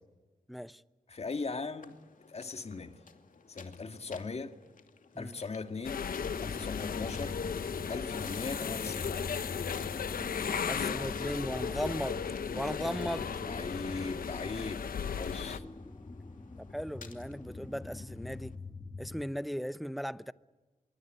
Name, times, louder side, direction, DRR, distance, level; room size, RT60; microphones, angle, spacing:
voice 1, 0.5-0.8 5.1-5.4 10.7-12.2 12.5-13.3 16.6-18.5 19.0-20.3, equal, ahead, 0.8 m, -37 dB
voice 2, 1.1-2.0 2.3-3.0 3.5-4.6 5.2-6.1 6.4-7.4 7.9-9.2 13.5-14.9 15.2-15.6, left 4 dB, 45° left, 2.1 m, -39 dB
sound 1, 1.8-18.6, left 5 dB, 70° left, 2.7 m, -56 dB
sound 2, 5.8-15.6, left 7 dB, 85° left, 1.1 m, -36 dB
sound 3, 6.1-19.2, left 3 dB, 25° left, 1.6 m, -44 dB
25.5 x 23.5 x 9.0 m
wide cardioid pair, 85°, 14 cm